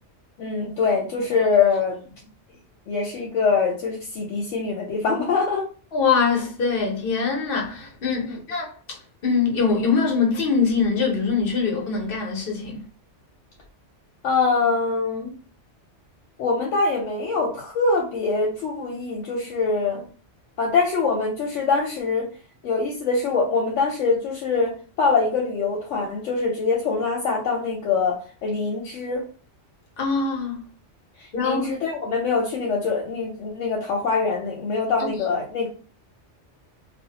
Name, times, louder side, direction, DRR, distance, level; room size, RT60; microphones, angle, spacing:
voice 1, 0.4-2.0 2.9-5.7 8.2-8.4 14.2-15.3 16.4-20.0 20.6-22.3 22.6-29.2 31.2-35.7, left 4 dB, 85° left, 1.0 m, -24 dB
voice 2, 5.9-8.7 9.2-12.8 30.0-30.6 31.3-31.7 35.1-35.2, left 5 dB, 55° left, 0.8 m, -23 dB
2.5 x 2.0 x 2.7 m
omnidirectional pair, 1.2 m